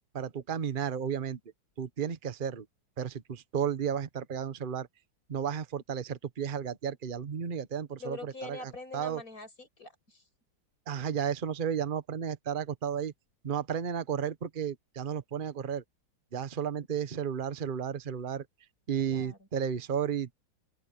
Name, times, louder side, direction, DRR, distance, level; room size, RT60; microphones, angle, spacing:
voice 1, 0.1-1.4 1.8-2.6 3.0-4.9 5.3-9.2 10.9-13.1 13.4-15.8 16.3-18.4 18.9-20.4, right 8 dB, 35° right, 1.0 m, -33 dB
voice 2, 8.0-10.2 19.1-19.5, left 3 dB, 45° left, 7.0 m, -44 dB
open air
omnidirectional pair, 2.1 m